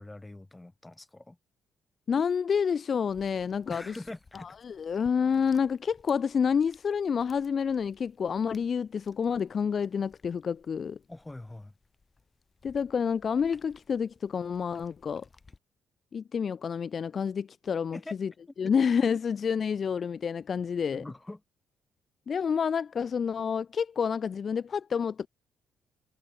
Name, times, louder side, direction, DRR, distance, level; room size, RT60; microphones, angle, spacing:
voice 1, 0.0-1.4 3.7-4.6 11.1-11.7 17.9-18.2 18.6-18.7 20.9-21.4, left 2 dB, 15° left, 4.5 m, -43 dB
voice 2, 2.1-3.9 4.3-11.0 12.6-15.3 16.1-18.3 18.6-21.0 22.3-25.3, left 6 dB, 45° left, 1.0 m, -29 dB
sound 1, 3.1-15.6, left 4 dB, 30° left, 6.4 m, -61 dB
cardioid pair, 90°, 0 cm